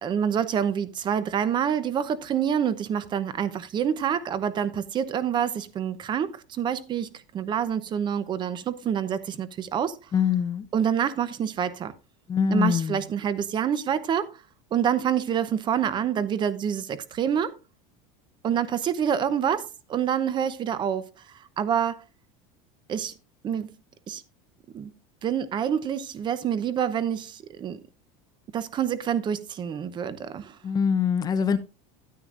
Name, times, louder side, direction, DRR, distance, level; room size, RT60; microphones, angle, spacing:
voice 1, 0.0-10.0 10.7-11.9 12.5-14.3 14.7-17.5 18.4-21.1 21.6-22.0 22.9-23.1 23.4-23.7 24.1-24.2 24.7-24.9 25.2-27.8 28.5-30.6, right 8 dB, 25° right, 0.8 m, -27 dB
voice 2, 10.1-10.6 12.3-13.0 30.6-31.6, left 7 dB, 20° left, 0.8 m, -23 dB
13.0 x 9.0 x 2.6 m
supercardioid pair, 150°, 17 cm